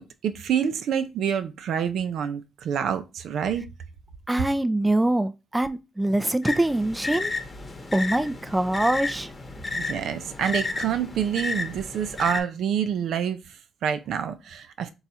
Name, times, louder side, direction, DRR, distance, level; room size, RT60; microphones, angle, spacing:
voice 1, 0.0-3.6 9.7-14.9, right 8 dB, 70° right, 0.5 m, -27 dB
voice 2, 4.3-7.3 7.9-9.3, right 1 dB, 10° right, 0.4 m, -24 dB
sound 1, 6.4-12.4, left 3 dB, 25° left, 1.0 m, -32 dB
3.9 x 2.3 x 4.2 m
cardioid pair, 90°, 0 cm